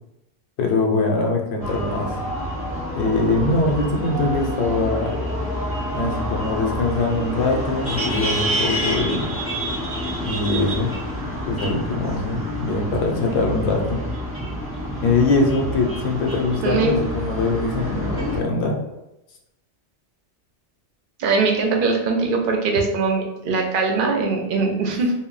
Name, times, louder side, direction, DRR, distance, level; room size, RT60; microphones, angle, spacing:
voice 1, 0.6-2.2 2.9-5.2 5.9-9.3 10.2-10.9 11.5-14.0 15.0-18.8, left 3 dB, 75° left, 1 dB, 0.8 m, -22 dB
sound 1, 1.6-18.4, equal, 15° right, 0.6 m, -28 dB
voice 2, 16.6-16.9 21.2-25.1, right 4 dB, 60° right, 2 dB, 0.6 m, -21 dB
2.1 x 2.1 x 3.7 m, 0.91 s
omnidirectional pair, 1.2 m